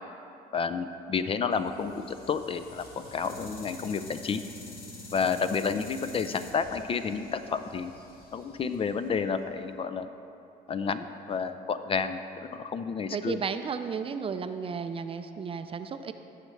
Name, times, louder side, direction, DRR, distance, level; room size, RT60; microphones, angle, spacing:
voice 1, 0.5-2.9 3.1-4.4 5.1-7.9 8.3-10.1 10.7-13.4, left 5 dB, 35° left, 10 dB, 0.4 m, -30 dB
sound 1, 1.5-9.6, left 2 dB, 65° left, 1.5 m, -47 dB
voice 2, 13.1-16.1, right 6 dB, 35° right, 9 dB, 0.4 m, -33 dB
16.0 x 6.5 x 3.2 m, 2.7 s
cardioid pair, 110°, 17 cm